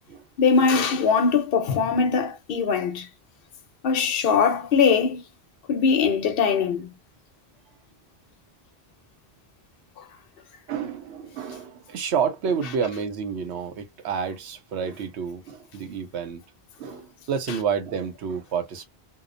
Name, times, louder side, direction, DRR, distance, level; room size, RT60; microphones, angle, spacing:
voice 1, 0.4-3.1 3.8-5.2 5.7-6.9, left 5 dB, 65° left, 0.8 m, -21 dB
voice 2, 10.7-16.4 16.8-18.8, right 7 dB, 90° right, 1.0 m, -29 dB
2.8 x 2.0 x 2.5 m
omnidirectional pair, 1.1 m